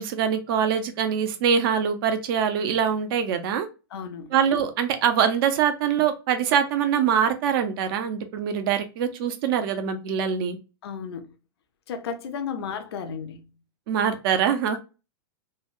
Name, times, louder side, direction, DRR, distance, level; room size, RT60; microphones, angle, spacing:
voice 1, 0.0-3.7 4.3-10.6 13.9-14.8, right 8 dB, 60° right, 0.7 m, -24 dB
voice 2, 3.9-4.3 10.8-11.3 11.9-13.5, left 6 dB, 75° left, 0.6 m, -33 dB
3.4 x 2.2 x 2.4 m
hypercardioid pair, 115°, 13 cm